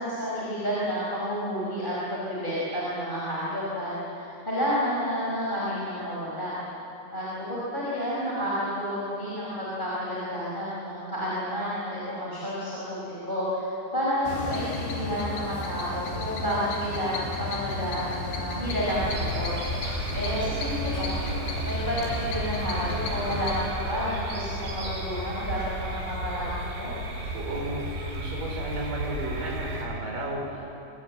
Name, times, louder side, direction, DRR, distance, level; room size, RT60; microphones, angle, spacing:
voice 1, 0.0-6.5 7.1-13.7 13.9-19.5 20.1-21.2 21.6-26.9, equal, 10° left, -8 dB, 4.9 m, -30 dB
sound 1, 14.2-23.7, left 3 dB, 70° left, 4.9 m, -34 dB
sound 2, 18.7-29.9, right 1 dB, 90° right, 7.0 m, -33 dB
voice 2, 27.3-30.8, right 1 dB, 50° right, -1 dB, 6.5 m, -34 dB
24.0 x 23.5 x 8.8 m, 2.8 s
omnidirectional pair, 5.0 m